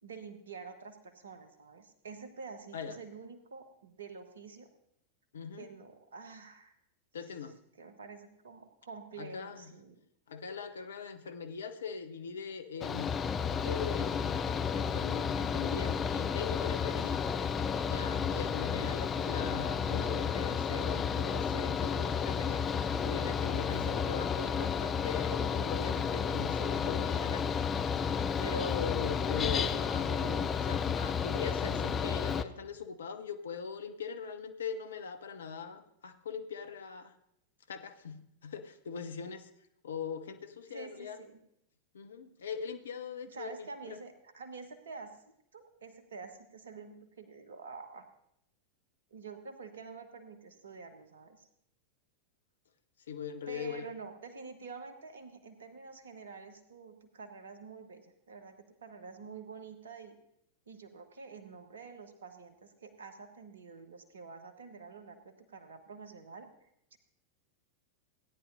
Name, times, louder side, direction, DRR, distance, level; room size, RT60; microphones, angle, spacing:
voice 1, 0.0-4.7 5.6-6.7 7.2-7.3 7.8-10.0 40.7-41.4 43.3-45.2 45.5-48.1 49.1-51.5 53.5-60.2 60.7-67.0, right 5 dB, 65° right, 8 dB, 1.2 m, -48 dB
voice 2, 5.3-5.7 7.1-7.5 9.2-9.7 10.3-13.1 13.6-14.4 14.7-17.2 17.8-22.6 23.0-27.6 28.4-37.1 37.7-39.5 39.8-41.2 41.9-44.0 53.1-53.9, left 6 dB, 65° left, 8 dB, 0.8 m, -41 dB
Mechanical fan, 12.8-32.4, left 6 dB, 25° left, 0.4 m, -32 dB
16.5 x 10.0 x 2.7 m, 0.75 s
figure-of-eight pair, 90°, 0 cm